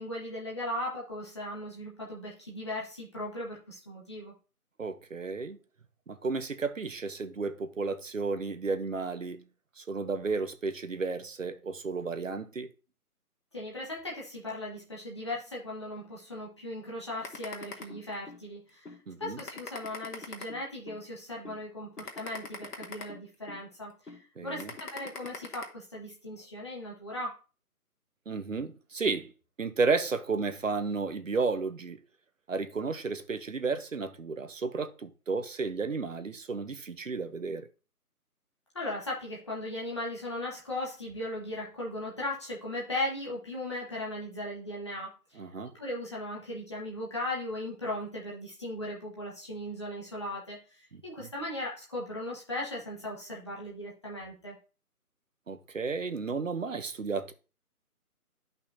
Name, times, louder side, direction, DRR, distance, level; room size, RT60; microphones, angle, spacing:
voice 1, 0.0-4.3 13.5-27.4 38.7-54.6, left 1 dB, 20° left, 1.5 m, -38 dB
voice 2, 4.8-5.6 6.1-9.4 9.8-12.7 19.1-19.4 24.4-24.7 28.3-29.3 29.6-32.0 32.5-37.7 45.4-45.7 50.9-51.3 55.5-57.3, right 4 dB, 55° right, 1.0 m, -33 dB
sound 1, 17.2-18.4 18.9-19.0 19.4-21.0 21.5-21.6 22.0-23.6 24.1-24.2 24.6-25.6, left 4 dB, 85° left, 2.2 m, -42 dB
11.0 x 5.7 x 2.8 m
figure-of-eight pair, 175°, 46 cm